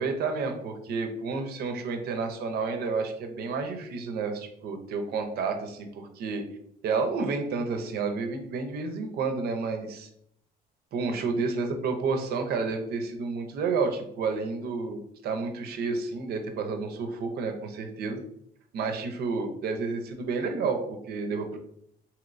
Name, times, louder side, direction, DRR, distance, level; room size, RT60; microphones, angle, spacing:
voice 1, 0.0-6.4 6.8-10.1 10.9-18.2 18.7-21.6, right 4 dB, 70° right, 5 dB, 0.6 m, -30 dB
3.1 x 2.9 x 2.5 m, 0.72 s
cardioid pair, 110°, 17 cm